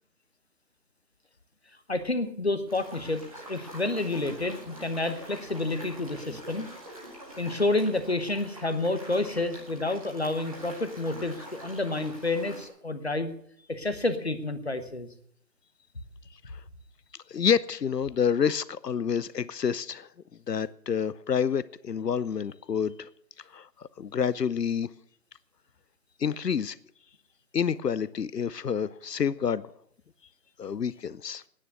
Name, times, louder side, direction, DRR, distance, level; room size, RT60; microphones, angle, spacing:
voice 1, 1.9-3.2 3.5-6.7 7.4-13.3 13.7-15.1, left 2 dB, 40° left, 1.0 m, -29 dB
sound 1, 2.7-12.7, equal, 20° right, 2.0 m, -45 dB
voice 2, 17.3-20.1 20.5-23.1 23.5-24.9 26.2-26.8 27.5-29.6 30.6-31.4, left 7 dB, 70° left, 0.7 m, -28 dB
9.9 x 9.0 x 9.5 m
figure-of-eight pair, 175°, 50 cm